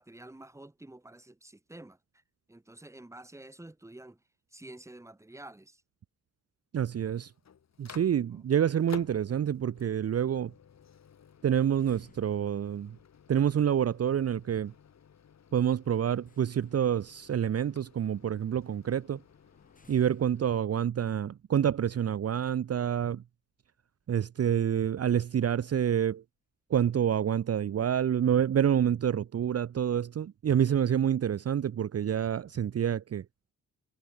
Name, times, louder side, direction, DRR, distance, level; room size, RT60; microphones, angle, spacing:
voice 1, 0.0-2.0 2.5-4.2 4.5-5.8 8.3-8.5, right 1 dB, 10° right, 2.1 m, -49 dB
voice 2, 6.7-7.3 7.8-10.5 11.4-13.0 13.3-14.7 15.5-19.2 19.9-23.2 24.1-26.2 26.7-33.2, right 9 dB, 50° right, 0.8 m, -27 dB
Microwave oven, 7.0-20.6, left 8 dB, 55° left, 2.2 m, -54 dB
sound 1, 11.8-23.0 23.4-23.5 23.8-24.0 25.0-25.6 25.9-26.0 26.4-26.5 27.1-27.2 27.4-27.8 28.1-28.9, left 3 dB, 25° left, 7.2 m, -65 dB
wide cardioid pair, 115°, 32 cm